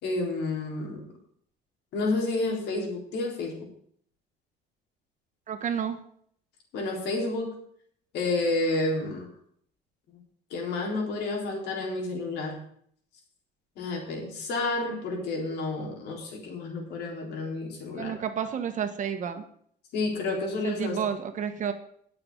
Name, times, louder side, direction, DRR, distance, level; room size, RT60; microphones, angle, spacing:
voice 1, 0.0-1.0 1.9-3.6 6.7-7.5 8.1-9.3 10.5-12.6 13.8-18.2 19.9-21.0, left 2 dB, 80° left, 0 dB, 3.8 m, -30 dB
voice 2, 5.5-6.0 18.0-19.4 20.6-21.7, right 8 dB, 50° right, 8 dB, 1.5 m, -30 dB
19.0 x 6.9 x 4.0 m, 0.63 s
cardioid pair, 110°, 17 cm